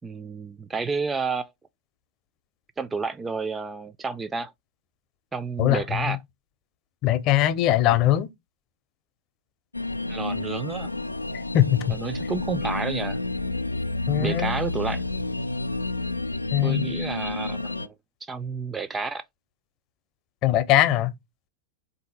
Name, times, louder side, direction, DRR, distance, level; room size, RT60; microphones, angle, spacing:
voice 1, 0.0-1.5 2.8-4.5 5.3-6.2 10.1-10.9 11.9-13.2 14.2-15.1 16.6-17.9 18.2-19.2, right 4 dB, 15° right, 0.3 m, -30 dB
voice 2, 5.6-6.2 7.0-8.3 11.5-12.0 14.1-14.6 16.5-16.9 20.4-21.1, left 13 dB, 40° left, 0.6 m, -21 dB
sound 1, 9.7-17.9, left 2 dB, 85° left, 0.3 m, -30 dB
3.7 x 2.7 x 4.0 m
figure-of-eight pair, 90°, 0 cm